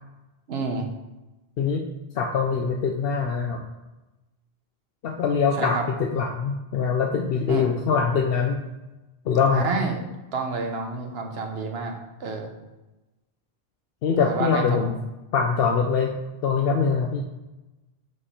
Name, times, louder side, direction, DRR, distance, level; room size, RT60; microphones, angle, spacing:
voice 1, 0.5-0.9 5.5-5.8 7.5-7.7 9.5-10.0 10.3-11.9 12.2-12.5 14.2-14.9, right 4 dB, 75° right, 3 dB, 1.1 m, -29 dB
voice 2, 2.1-3.6 5.0-5.8 6.1-8.6 9.3-9.7 14.0-15.0 15.3-16.1 16.4-17.2, left 5 dB, 70° left, 2 dB, 0.8 m, -23 dB
4.9 x 4.9 x 4.3 m, 1.1 s
omnidirectional pair, 1.0 m